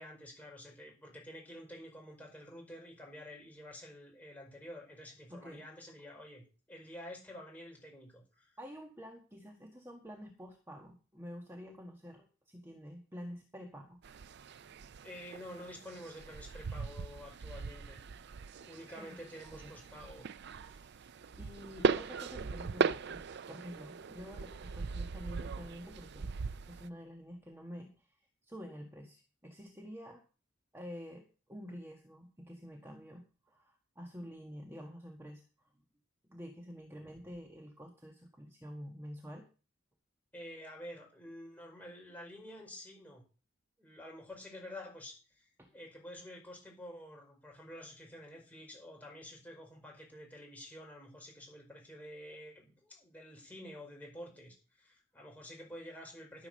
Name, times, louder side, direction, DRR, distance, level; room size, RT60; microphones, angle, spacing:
voice 1, 0.0-8.5 15.0-18.0 18.6-20.3 20.6-20.9 40.3-43.2 43.8-56.5, left 1 dB, 10° left, -1 dB, 5.4 m, -49 dB
voice 2, 5.3-5.6 8.6-14.0 19.0-19.2 19.6-19.7 21.4-26.4 26.6-30.2 30.7-35.4 36.3-39.5 45.6-45.7, equal, 15° right, 1 dB, 1.5 m, -48 dB
sound 1, 14.0-26.9, right 5 dB, 60° right, 0.4 m, -39 dB
13.5 x 6.2 x 6.5 m, 0.35 s
head